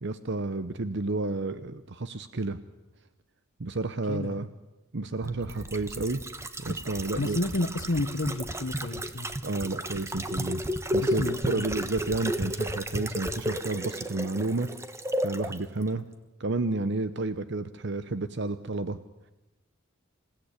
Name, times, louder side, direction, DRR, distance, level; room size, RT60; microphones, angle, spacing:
voice 1, 0.0-2.6 3.6-4.5 4.9-6.2 6.6-7.4 9.4-10.6 10.9-14.7 15.2-16.0 16.4-19.0, right 2 dB, 60° right, 12 dB, 0.9 m, -31 dB
voice 2, 4.1-4.4 7.2-9.3 11.0-11.7, left 2 dB, 65° left, 4 dB, 1.3 m, -31 dB
sound 1, 5.2-15.6 15.9-16.0, equal, 15° right, 1.3 m, -33 dB
27.5 x 17.0 x 9.9 m, 1.0 s
head